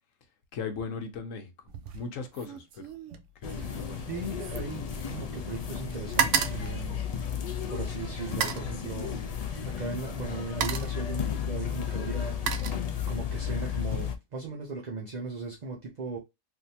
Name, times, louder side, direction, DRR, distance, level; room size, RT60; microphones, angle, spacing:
voice 1, 0.5-1.5 1.9-2.9 3.4-4.0, left 5 dB, 80° left, 1.2 m, -37 dB
sound 1, 1.7-2.1 2.3-5.5 5.8-7.7 8.3-8.7 9.8-9.9 10.3-11.1 11.9-13.3 13.7-14.0, right 8 dB, 75° right, 0.9 m, -33 dB
sound 2, 3.4-14.1, left 8 dB, 60° left, 0.4 m, -33 dB
voice 2, 4.1-7.0 7.4-9.2 9.6-12.4 13.1-16.2, right 4 dB, 40° right, 0.7 m, -38 dB
3.5 x 2.6 x 2.7 m
omnidirectional pair, 1.3 m